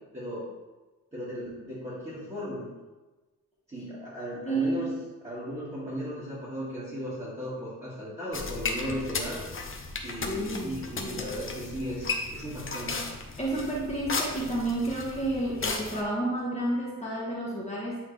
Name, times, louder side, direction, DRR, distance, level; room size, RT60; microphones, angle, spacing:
voice 1, 1.1-2.7 3.7-4.9 5.2-9.4 10.0-13.0, equal, 20° right, -12 dB, 2.1 m, -36 dB
voice 2, 4.5-5.0 10.2-10.7 11.0-11.2 13.4-18.0, right 2 dB, 20° left, -5 dB, 1.4 m, -30 dB
sound 1, 8.3-16.0, left 3 dB, 40° left, 0.8 m, -35 dB
9.0 x 3.9 x 3.4 m, 1.2 s
wide cardioid pair, 130°, 33 cm